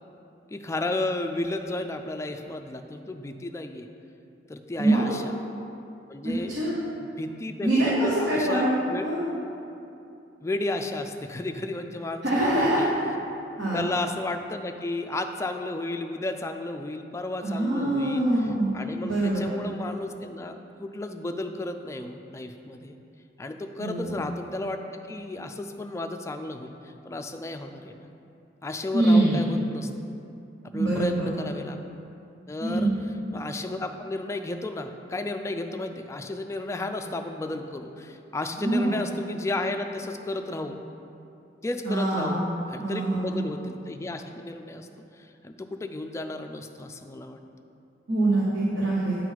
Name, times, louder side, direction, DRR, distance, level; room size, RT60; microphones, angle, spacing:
voice 1, 0.5-3.9 4.5-5.3 6.1-6.5 7.2-9.2 10.4-12.9 13.7-23.0 23.4-24.8 25.1-28.1 28.6-29.9 30.6-31.8 32.5-32.9 33.3-40.8 41.6-44.9 45.1-47.4, left 2 dB, 15° left, 6 dB, 0.3 m, -33 dB
voice 2, 6.2-6.7 7.6-8.7 9.0-9.2 12.2-12.8 13.6-13.8 17.4-18.7 19.0-19.4 23.8-24.1 28.9-29.4 30.7-31.3 32.6-32.9 38.6-38.9 41.8-42.4 42.8-43.4 48.1-49.2, right 1 dB, 90° right, -7 dB, 1.2 m, -24 dB
9.4 x 3.9 x 4.6 m, 2.7 s
head